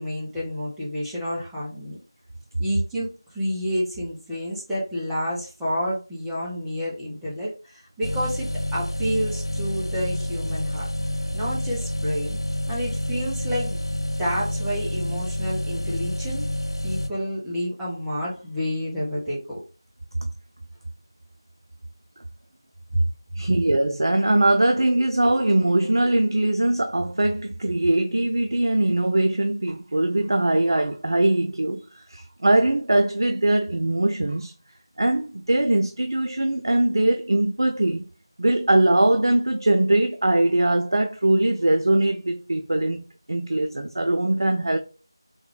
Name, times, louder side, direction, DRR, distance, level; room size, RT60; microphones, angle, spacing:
voice 1, 0.0-2.0 2.6-10.9 11.3-12.4 12.7-13.8 14.2-16.4 16.8-19.6, equal, ahead, 0.6 m, -29 dB
sound 1, 8.0-17.1, left 1 dB, 80° left, 0.6 m, -28 dB
voice 2, 23.4-34.5 35.0-38.0 38.4-44.8, right 1 dB, 60° right, 0.4 m, -21 dB
3.6 x 2.3 x 3.1 m
figure-of-eight pair, 170°, 3 cm